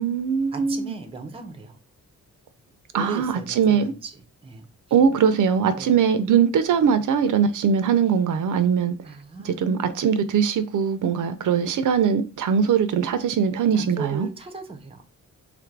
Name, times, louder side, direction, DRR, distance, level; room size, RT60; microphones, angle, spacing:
voice 1, 0.0-0.9 2.9-3.9 4.9-8.9 9.4-14.3, right 7 dB, 70° right, 0.5 m, -21 dB
voice 2, 0.5-1.8 2.9-4.1 4.4-4.7 5.8-6.0 9.0-9.6 13.7-15.0, right 4 dB, 20° right, 0.5 m, -37 dB
3.5 x 2.5 x 4.5 m
wide cardioid pair, 170°, 32 cm